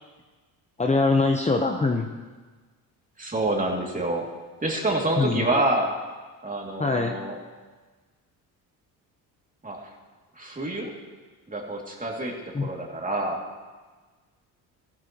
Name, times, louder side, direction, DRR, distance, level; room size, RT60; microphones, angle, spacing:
voice 1, 0.8-2.1 5.2-5.4 6.8-7.1 12.5-12.7, left 3 dB, 15° left, 3 dB, 0.9 m, -23 dB
voice 2, 3.2-4.3 4.6-5.9 6.4-7.4 9.6-9.9 10.4-10.9 11.5-13.4, right 2 dB, 20° right, 0 dB, 2.6 m, -27 dB
15.0 x 12.0 x 3.0 m, 1.4 s
supercardioid pair, 75°, 40 cm